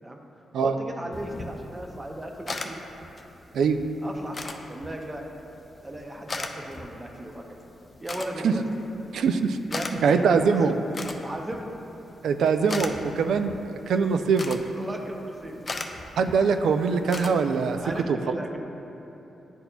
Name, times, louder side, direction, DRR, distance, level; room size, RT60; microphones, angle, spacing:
voice 1, 0.6-2.8 4.0-5.3 5.8-7.4 8.0-8.8 9.7-11.8 14.8-15.7 17.8-18.6, right 1 dB, 20° right, 2 dB, 0.6 m, -37 dB
sound 1, 1.1-18.0, left 2 dB, 35° left, 0.4 m, -40 dB
voice 2, 9.1-9.6 10.0-10.8 12.2-13.6 13.9-14.6 16.2-17.8 18.1-18.2, right 5 dB, 85° right, 7 dB, 0.3 m, -22 dB
11.0 x 4.1 x 2.3 m, 2.9 s
cardioid pair, 110°, 0 cm